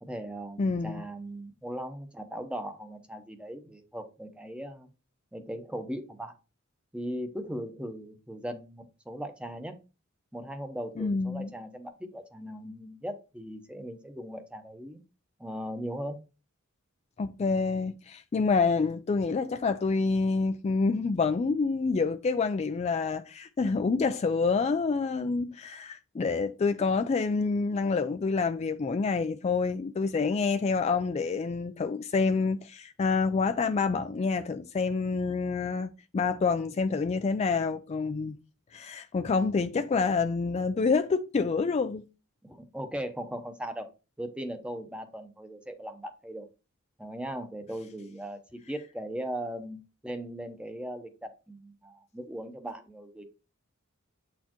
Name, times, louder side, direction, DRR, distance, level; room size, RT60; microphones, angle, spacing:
voice 1, 0.0-4.9 5.3-6.3 6.9-9.8 10.3-15.0 15.4-16.2 42.4-43.9 44.2-46.5 47.0-53.2, equal, 5° right, 0.8 m, -38 dB
voice 2, 0.6-1.0 11.0-11.5 17.2-38.4 38.7-42.1, left 4 dB, 30° left, 0.3 m, -27 dB
8.1 x 4.3 x 3.0 m
head